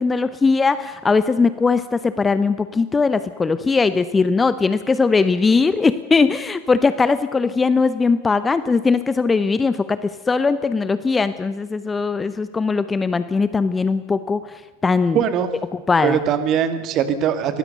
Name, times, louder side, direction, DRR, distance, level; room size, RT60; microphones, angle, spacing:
voice 1, 0.0-14.4 14.8-15.2 15.7-16.2, left 4 dB, 15° left, 13 dB, 0.9 m, -19 dB
voice 2, 15.1-15.5 16.0-17.6, right 9 dB, 35° right, 10 dB, 2.2 m, -21 dB
24.0 x 18.5 x 6.7 m, 1.3 s
figure-of-eight pair, 90°, 0 cm